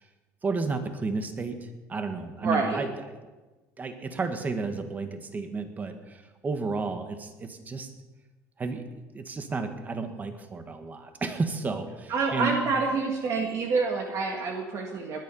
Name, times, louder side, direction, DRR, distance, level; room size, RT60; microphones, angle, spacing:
voice 1, 0.4-2.9 3.8-7.9 8.6-8.8 9.1-12.6, right 4 dB, 25° right, 7 dB, 1.7 m, -32 dB
voice 2, 2.4-2.8 12.1-15.2, right 4 dB, 45° right, 2 dB, 1.8 m, -27 dB
20.0 x 10.0 x 5.6 m, 1.2 s
cardioid pair, 120°, 7 cm